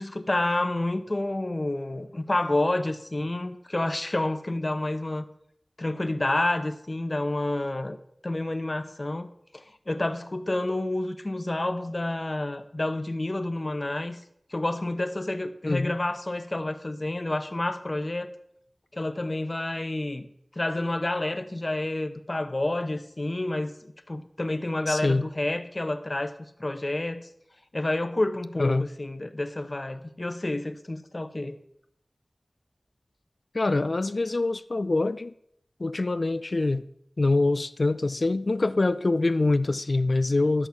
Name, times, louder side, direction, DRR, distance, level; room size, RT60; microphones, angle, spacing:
voice 1, 0.0-5.3 5.8-8.0 8.2-9.3 9.5-14.2 14.5-18.3 18.9-20.3 20.5-26.3 26.6-27.3 27.7-31.6, left 2 dB, 45° left, 1.0 m, -29 dB
voice 2, 24.9-25.3 28.6-28.9 33.5-35.3 35.8-36.8 37.2-40.7, left 2 dB, 65° left, 0.5 m, -24 dB
13.0 x 6.5 x 5.8 m
wide cardioid pair, 55°, 0 cm